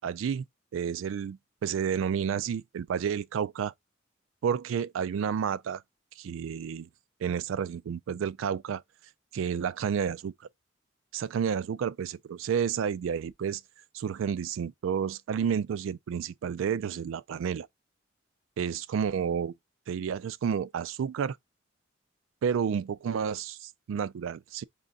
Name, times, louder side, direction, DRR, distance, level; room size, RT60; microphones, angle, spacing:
voice 1, 0.0-0.4 0.7-3.7 4.4-5.8 6.2-6.9 7.2-8.8 9.3-10.3 11.1-13.6 13.9-17.7 18.6-19.5 19.9-21.4 22.4-24.6, right 7 dB, 85° right, 0.3 m, -30 dB
3.7 x 3.3 x 4.0 m
head